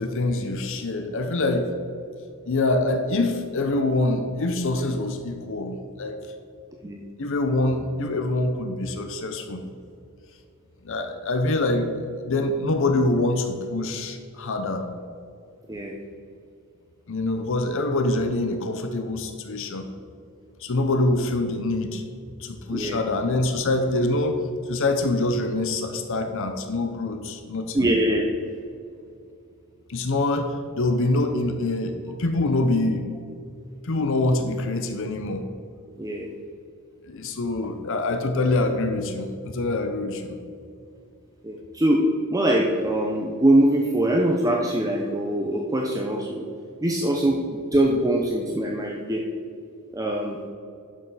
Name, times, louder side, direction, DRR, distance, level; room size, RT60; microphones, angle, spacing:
voice 1, 0.0-1.7 2.5-6.2 7.2-9.6 10.8-11.9 12.2-14.9 17.1-19.9 20.6-22.0 22.4-27.9 29.9-33.1 33.8-35.5 37.1-40.4, left 2 dB, 65° left, 7 dB, 0.7 m, -25 dB
voice 2, 22.7-23.0 27.7-28.3 36.0-36.3 41.4-42.0 42.3-46.5 46.8-49.2 49.9-50.4, right 1 dB, 15° right, -1 dB, 0.6 m, -23 dB
11.0 x 6.3 x 4.0 m, 2.5 s
head